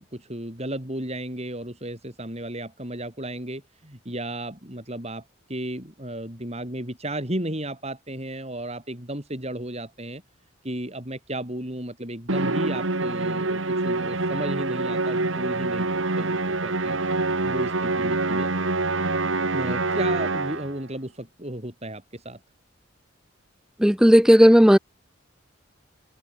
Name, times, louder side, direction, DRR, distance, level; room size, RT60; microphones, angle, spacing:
voice 1, 0.0-10.2 10.6-17.0 17.4-18.5 19.5-22.4, right 1 dB, 35° right, 7.7 m, -34 dB
Musical instrument, 12.3-20.8, right 2 dB, 85° right, 2.2 m, -26 dB
voice 2, 23.8-24.8, equal, 5° right, 0.6 m, -14 dB
head